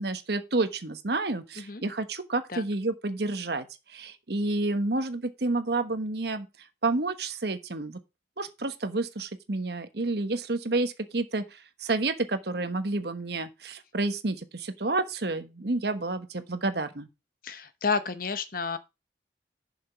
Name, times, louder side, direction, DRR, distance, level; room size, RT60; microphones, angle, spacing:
voice 1, 0.0-3.7 3.9-6.5 6.8-8.0 8.4-17.1, right 2 dB, 60° right, 1.1 m, -30 dB
voice 2, 17.4-18.8, left 5 dB, 50° left, 0.9 m, -30 dB
7.3 x 5.9 x 5.9 m
head